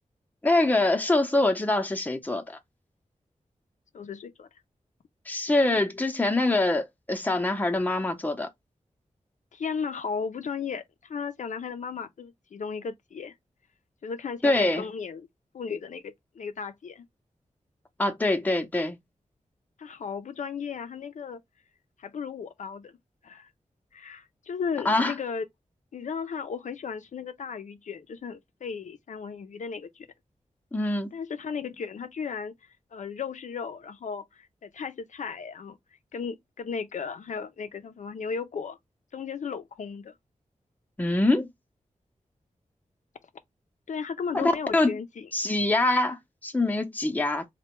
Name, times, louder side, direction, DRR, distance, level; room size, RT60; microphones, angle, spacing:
voice 1, 0.4-2.6 5.3-8.5 14.4-14.8 18.0-19.0 24.8-25.1 30.7-31.1 41.0-41.5 44.3-44.9 45.3-47.5, left 2 dB, 15° left, 0.6 m, -24 dB
voice 2, 3.9-4.5 9.5-13.3 14.0-15.3 15.5-17.0 19.8-21.4 22.0-22.9 23.2-23.5 23.9-25.5 25.9-30.1 31.1-32.5 32.9-35.8 36.1-38.8 39.1-40.1 43.9-45.3, left 6 dB, 70° left, 0.5 m, -35 dB
4.3 x 2.2 x 2.9 m
wide cardioid pair, 110°, 13 cm